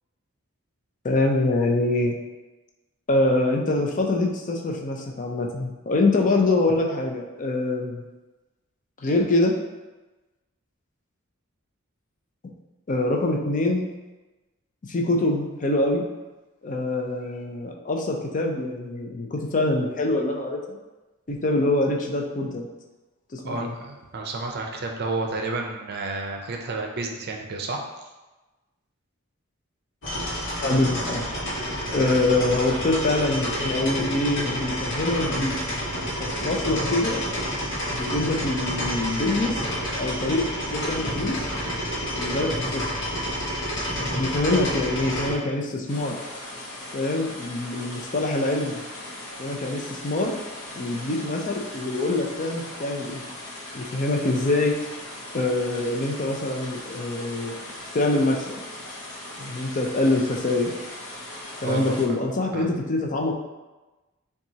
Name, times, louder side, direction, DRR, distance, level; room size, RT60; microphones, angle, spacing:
voice 1, 1.0-2.2 3.1-8.0 9.0-9.6 12.9-13.9 14.9-16.0 16.6-20.8 21.3-22.7 23.3-23.7 30.6-31.3 31.9-35.5 36.2-37.2 37.9-39.6 40.0-41.5 42.2-42.9 44.1-46.3 46.9-48.8 49.4-50.4 50.8-53.2 53.7-54.8 55.3-57.6 57.9-58.6 59.4-60.8 61.6-63.3, left 2 dB, 40° left, 1 dB, 0.5 m, -24 dB
voice 2, 23.4-28.1 31.9-32.1 61.6-62.2 62.5-62.7, right 3 dB, 50° right, 2 dB, 0.5 m, -31 dB
sound 1, 30.0-45.3, equal, 60° left, 1.1 m, -29 dB
sound 2, 45.9-62.1, left 1 dB, 90° left, 0.8 m, -39 dB
5.7 x 2.4 x 2.8 m, 1.1 s
head